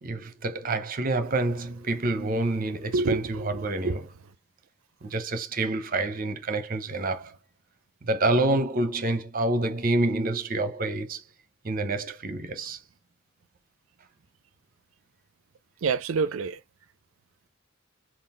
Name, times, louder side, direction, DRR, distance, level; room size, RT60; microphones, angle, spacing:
voice 1, 0.0-4.1 5.0-7.4 8.0-11.2 11.6-12.8, right 2 dB, 45° right, 0.8 m, -27 dB
voice 2, 2.9-4.0 15.8-16.6, right 4 dB, 85° right, 0.4 m, -27 dB
3.8 x 2.4 x 3.7 m
head